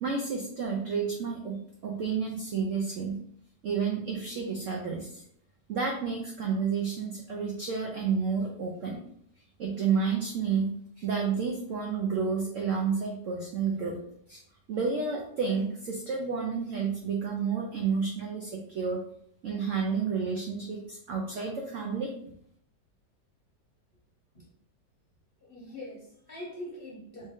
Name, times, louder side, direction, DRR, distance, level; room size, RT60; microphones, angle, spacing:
voice 1, 0.0-3.2 3.6-5.2 5.7-9.0 9.6-14.0 14.3-14.4 14.7-19.0 19.4-22.1, right 5 dB, 75° right, 0 dB, 0.7 m, -30 dB
voice 2, 25.4-27.3, left 1 dB, 45° left, -4 dB, 0.8 m, -42 dB
3.2 x 2.7 x 3.5 m, 0.68 s
omnidirectional pair, 1.9 m